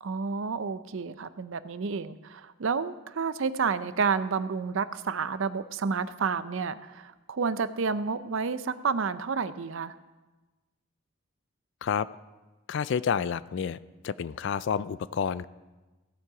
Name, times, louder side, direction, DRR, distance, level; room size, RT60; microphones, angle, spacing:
voice 1, 0.0-9.9, right 5 dB, 60° right, 14 dB, 0.5 m, -30 dB
voice 2, 12.7-13.8 14.0-15.5, left 7 dB, 55° left, 17 dB, 0.3 m, -29 dB
16.0 x 7.5 x 4.8 m, 1.2 s
head